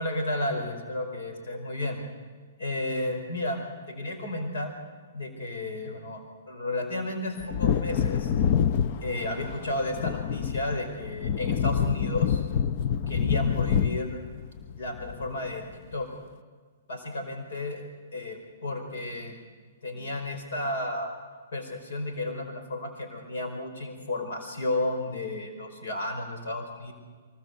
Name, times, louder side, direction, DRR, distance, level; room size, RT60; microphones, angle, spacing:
voice 1, 0.0-2.0 2.6-3.6 3.9-4.7 5.1-8.3 9.0-12.4 13.1-14.2 14.8-15.6 15.9-16.1 16.9-17.8 18.1-19.4 19.8-21.1 21.5-26.9, left 1 dB, 80° left, 5 dB, 4.7 m, -32 dB
Wind / Thunder, 7.4-15.6 15.9-16.0, left 8 dB, 45° left, 0.6 m, -27 dB
24.0 x 21.5 x 8.1 m, 1.5 s
hypercardioid pair, 150°, 0 cm